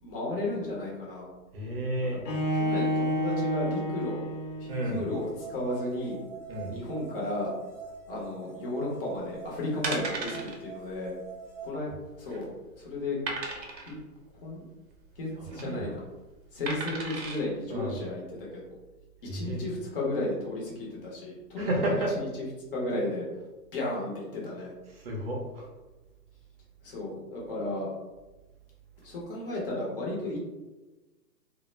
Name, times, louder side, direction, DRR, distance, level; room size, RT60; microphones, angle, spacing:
voice 1, 0.0-1.3 2.5-4.2 4.6-6.2 6.7-7.5 8.1-11.1 11.6-11.9 12.2-12.5 12.8-13.2 13.9-14.0 14.4-14.6 15.2-16.0 16.5-18.7 19.3-22.3 22.7-23.3 23.7-24.7 26.8-27.9 29.0-30.4, left 1 dB, 35° left, -4 dB, 0.7 m, -34 dB
voice 2, 1.5-2.2 4.7-5.1 6.5-6.8 15.4-15.9 17.7-18.0 19.2-19.6 21.6-22.2 24.9-25.7, right 1 dB, 40° right, -2 dB, 0.6 m, -31 dB
Bowed string instrument, 2.2-5.2, equal, 85° left, 0.7 m, -30 dB
sound 1, 4.7-11.7, right 5 dB, ahead, 1.0 m, -45 dB
sound 2, 9.2-9.4 9.8-10.6 10.9-11.1 11.3-11.4 12.0-12.5 13.3-13.9 15.3-15.6 16.7-17.4 18.0-18.1, right 3 dB, 85° right, 0.8 m, -35 dB
2.0 x 2.0 x 3.1 m, 1.2 s
hypercardioid pair, 140°, 50 cm